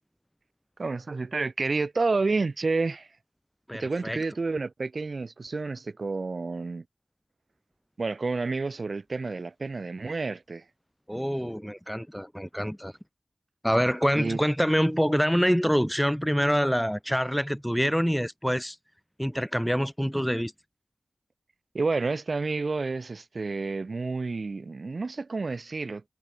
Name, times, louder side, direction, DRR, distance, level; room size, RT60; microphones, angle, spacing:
voice 1, 0.8-3.1 3.7-6.8 8.0-10.6 14.2-14.4 21.7-26.0, right 3 dB, 55° right, 1.0 m, -30 dB
voice 2, 3.7-4.2 11.1-12.9 13.6-18.8 19.2-20.5, equal, ahead, 0.4 m, -26 dB
wide cardioid pair, 70°, 0 cm